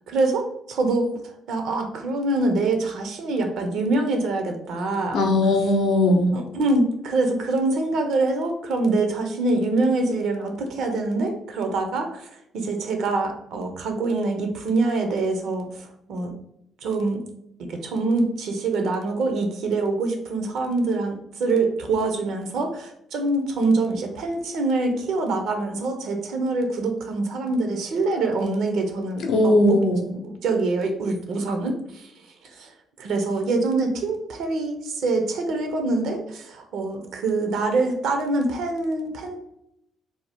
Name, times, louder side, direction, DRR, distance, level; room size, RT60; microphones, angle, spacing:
voice 1, 0.1-1.1 1.5-5.2 6.3-16.3 16.8-17.2 17.6-29.8 30.2-32.1 32.6-32.7 33.0-39.4, right 3 dB, 70° right, 4 dB, 0.5 m, -25 dB
voice 2, 5.1-6.3 29.2-30.1, left 1 dB, 75° left, 2 dB, 0.5 m, -19 dB
2.6 x 2.1 x 3.4 m, 0.77 s
hypercardioid pair, 50°, 0 cm